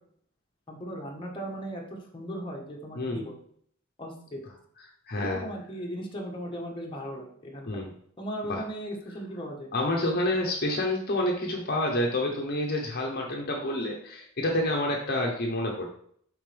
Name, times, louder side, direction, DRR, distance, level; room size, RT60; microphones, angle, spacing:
voice 1, 0.7-3.4 4.0-4.4 5.1-7.7 8.2-9.7, equal, 25° left, -1 dB, 1.4 m, -37 dB
voice 2, 5.1-5.5 7.7-7.9 8.5-8.6 9.7-15.9, left 1 dB, 50° left, 0 dB, 1.1 m, -28 dB
7.2 x 5.5 x 3.5 m, 0.62 s
head